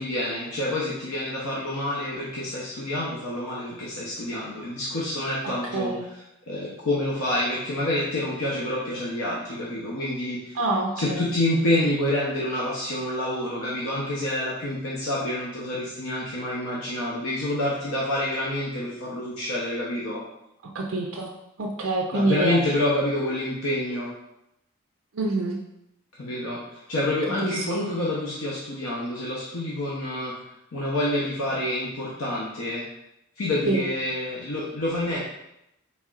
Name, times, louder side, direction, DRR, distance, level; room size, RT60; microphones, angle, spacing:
voice 1, 0.0-5.9 6.5-10.6 11.0-20.2 22.1-24.1 26.2-30.3 30.7-32.8 33.4-35.2, left 1 dB, 85° left, -6 dB, 0.8 m, -27 dB
voice 2, 5.7-6.0 10.5-11.2 20.7-21.3 21.6-22.6 25.1-25.6 27.4-27.7 33.6-33.9, right 2 dB, 70° right, -1 dB, 0.5 m, -26 dB
4.2 x 4.1 x 2.4 m, 0.83 s
head